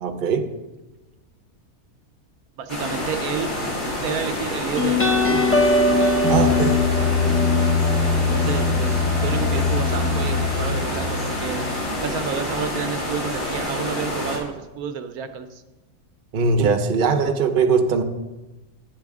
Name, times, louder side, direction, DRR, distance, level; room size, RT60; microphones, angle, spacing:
voice 1, 0.0-0.5 6.3-6.8 16.3-18.0, right 5 dB, 45° right, 6 dB, 0.8 m, -20 dB
voice 2, 2.6-3.5 4.0-5.5 8.2-11.7 12.0-15.6, right 7 dB, 80° right, 9 dB, 1.1 m, -30 dB
sound 1, 2.7-14.4, left 1 dB, 50° left, 2.5 m, -28 dB
sound 2, 4.8-11.9, left 3 dB, 15° left, 0.5 m, -21 dB
9.6 x 9.0 x 3.6 m, 1.1 s
omnidirectional pair, 1.6 m